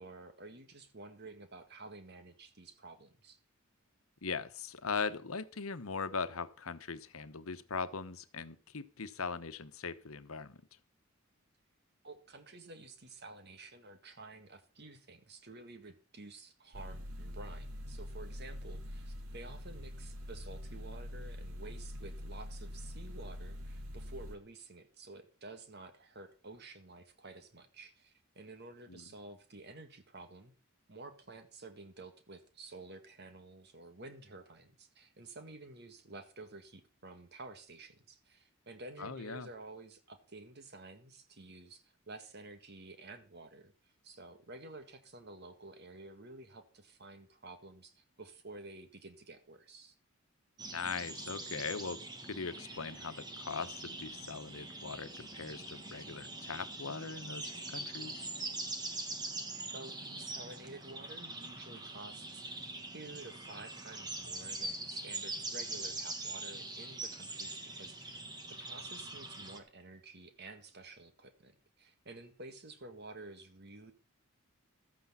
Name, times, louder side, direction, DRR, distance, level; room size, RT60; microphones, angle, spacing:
voice 1, 0.0-3.4 12.0-30.5 30.9-49.9 59.7-62.7 62.9-68.2 68.5-71.5 71.8-73.9, right 2 dB, 50° right, 8 dB, 1.9 m, -51 dB
voice 2, 4.2-10.6 28.9-29.0 39.0-39.5 50.7-52.0 52.3-58.3, left 5 dB, 85° left, 12 dB, 1.1 m, -40 dB
sound 1, 16.7-24.4, equal, 85° right, 2.1 m, -44 dB
sound 2, 50.6-69.6, right 2 dB, 20° right, 1.5 m, -43 dB
13.5 x 8.5 x 5.7 m, 0.36 s
head